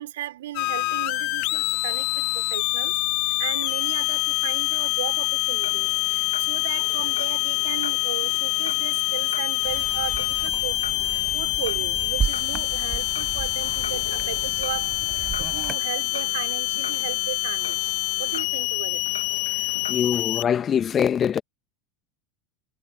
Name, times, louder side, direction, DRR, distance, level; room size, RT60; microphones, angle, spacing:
voice 1, 0.0-19.0, right 14 dB, 65° right, 4.0 m, -36 dB
sound 1, 0.5-20.4, left 27 dB, 55° left, 1.4 m, -26 dB
sound 2, 5.6-20.0, left 6 dB, 80° left, 1.8 m, -41 dB
sound 3, 9.6-15.8, right 8 dB, 30° right, 6.7 m, -34 dB
voice 2, 19.9-21.4, left 8 dB, 30° left, 1.3 m, -23 dB
figure-of-eight pair, 75°, 0 cm